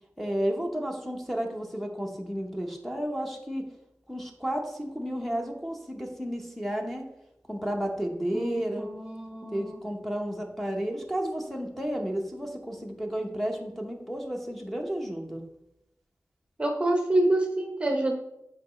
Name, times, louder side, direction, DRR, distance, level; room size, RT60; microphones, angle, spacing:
voice 1, 0.2-3.6 4.1-7.0 7.5-8.9 9.5-15.4, equal, 5° left, 0 dB, 1.0 m, -32 dB
voice 2, 8.3-9.8 16.6-18.2, right 1 dB, 20° right, 2 dB, 0.8 m, -27 dB
8.4 x 4.8 x 3.2 m, 0.86 s
wide cardioid pair, 90°, 5 cm